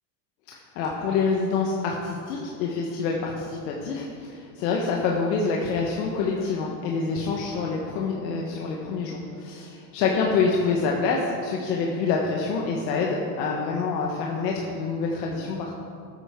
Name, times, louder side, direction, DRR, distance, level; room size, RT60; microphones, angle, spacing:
voice 1, 0.5-15.7, left 4 dB, 85° left, -1 dB, 1.4 m, -26 dB
13.0 x 9.3 x 3.7 m, 2.4 s
supercardioid pair, 110°, 49 cm